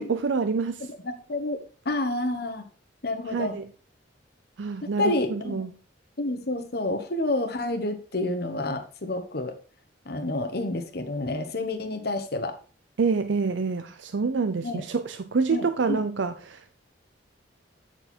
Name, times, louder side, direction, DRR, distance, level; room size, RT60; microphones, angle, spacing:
voice 1, 0.0-0.9 3.3-3.7 4.6-5.7 13.0-16.7, right 4 dB, 75° right, 0.5 m, -27 dB
voice 2, 0.8-1.6 1.8-2.7 3.0-3.6 4.8-5.6 6.2-9.5 10.0-12.5 14.6-14.8 15.5-16.0, left 2 dB, 55° left, 1.2 m, -29 dB
8.8 x 4.5 x 4.3 m
head